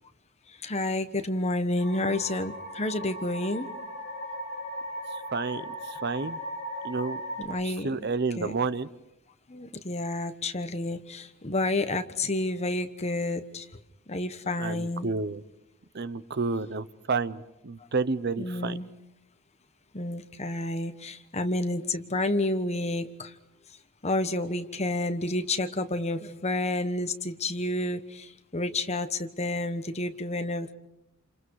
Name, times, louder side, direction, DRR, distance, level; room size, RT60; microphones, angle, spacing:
voice 1, 0.6-3.7 7.4-7.9 8.4-8.5 9.5-13.7 14.1-15.1 18.4-18.9 19.9-23.3 24.0-30.7, left 2 dB, 30° left, 9 dB, 1.3 m, -30 dB
sound 1, 1.8-7.4, equal, 50° left, 7.4 m, -37 dB
voice 2, 5.3-6.4 6.8-7.2 7.6-8.9 14.6-15.4 15.9-18.8, right 4 dB, 50° right, 15 dB, 0.8 m, -30 dB
29.0 x 28.0 x 4.8 m, 0.87 s
head